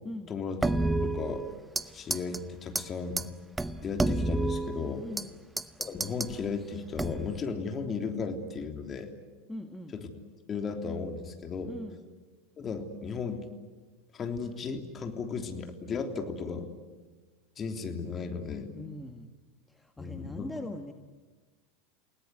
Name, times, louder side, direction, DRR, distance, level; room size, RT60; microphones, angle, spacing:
voice 1, 0.3-0.6 1.0-1.4 1.9-3.2 3.8-5.1 5.8-9.1 9.9-10.1 10.5-11.7 12.6-13.4 14.1-16.7 17.6-18.8 20.0-20.5, left 5 dB, 30° left, 5 dB, 3.3 m, -35 dB
sound 1, 0.6-1.9 2.1-2.4 2.8-2.9 3.2-3.3 3.6-5.3 5.6-6.3 7.0-7.4, right 2 dB, 10° right, 0.9 m, -30 dB
voice 2, 4.9-5.3 9.5-9.9 11.6-12.0 18.7-19.3 19.7-20.9, left 1 dB, 5° left, 5 dB, 1.7 m, -41 dB
29.5 x 18.5 x 9.7 m, 1.3 s
hypercardioid pair, 85°, 0 cm